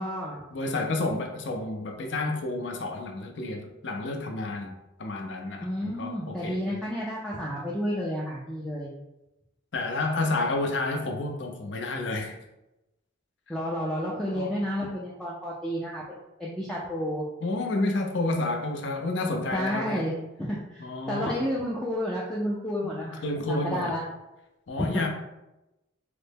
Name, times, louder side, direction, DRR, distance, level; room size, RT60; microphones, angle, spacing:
voice 1, 0.0-0.4 5.6-8.9 13.5-17.3 19.5-24.0 24.8-25.0, equal, 5° left, -6 dB, 0.3 m, -31 dB
voice 2, 0.5-6.8 9.7-12.4 14.3-14.6 17.4-20.0 20.8-21.4 22.8-23.9 24.7-25.1, left 2 dB, 65° left, 3 dB, 0.5 m, -30 dB
3.1 x 2.0 x 3.3 m, 0.96 s
head